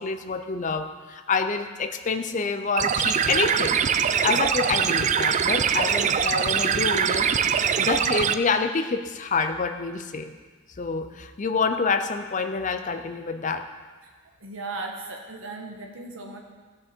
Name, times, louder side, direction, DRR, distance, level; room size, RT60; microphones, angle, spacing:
voice 1, 0.0-3.8 4.2-7.3 7.8-10.3 10.8-13.7, left 4 dB, 35° left, 7 dB, 0.6 m, -27 dB
sound 1, 2.8-8.3, right 7 dB, 35° right, 0.3 m, -23 dB
voice 2, 14.2-16.4, right 3 dB, 65° right, 2 dB, 1.4 m, -37 dB
15.0 x 6.2 x 4.4 m, 1.4 s
head